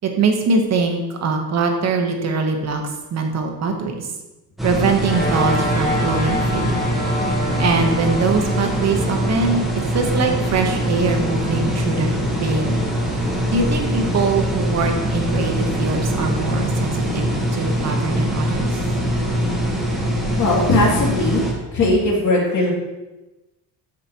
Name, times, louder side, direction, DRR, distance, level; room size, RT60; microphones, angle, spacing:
voice 1, 0.0-2.8 3.1-4.1 4.6-6.8 7.6-9.6 9.9-12.1 12.4-12.8 13.5-18.8, right 4 dB, 40° right, 3 dB, 1.0 m, -22 dB
sound 1, 4.6-21.5, equal, ahead, 1.1 m, -22 dB
sound 2, 5.0-17.7, left 1 dB, 20° left, 1.1 m, -31 dB
voice 2, 20.4-21.4 21.7-22.7, left 2 dB, 45° left, -4 dB, 2.4 m, -18 dB
13.0 x 5.0 x 2.9 m, 1.1 s
cardioid pair, 180°, 40 cm